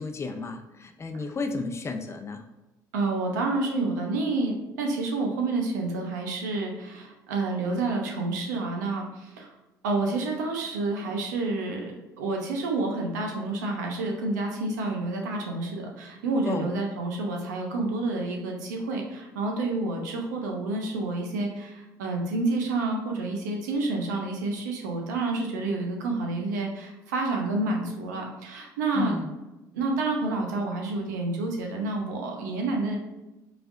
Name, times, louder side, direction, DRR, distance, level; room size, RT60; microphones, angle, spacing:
voice 1, 0.0-2.4 16.5-16.7 28.9-29.3, left 4 dB, 30° left, 6 dB, 0.6 m, -32 dB
voice 2, 2.9-9.5 9.8-11.9 12.2-29.2 29.7-33.0, right 3 dB, 85° right, 1 dB, 0.7 m, -29 dB
4.8 x 3.3 x 2.6 m, 1.0 s
hypercardioid pair, 60°, 9 cm